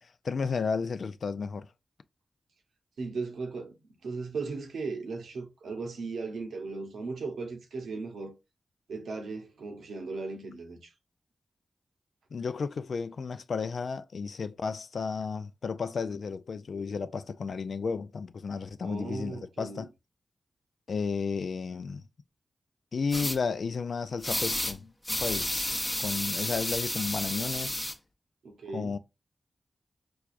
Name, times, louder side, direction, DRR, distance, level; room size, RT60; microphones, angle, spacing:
voice 1, 0.0-1.7 12.3-19.9 20.9-22.0 22.9-24.9 25.2-25.7 26.0-27.9 28.7-29.0, left 5 dB, 70° left, 0.3 m, -33 dB
voice 2, 3.0-3.8 4.0-8.3 8.9-10.9 18.8-19.9 28.4-29.0, right 4 dB, 90° right, 0.9 m, -37 dB
sound 1, 23.1-23.4 24.2-24.7 25.0-27.9, left 1 dB, 20° left, 0.8 m, -31 dB
4.4 x 2.3 x 2.5 m
cardioid pair, 40°, 0 cm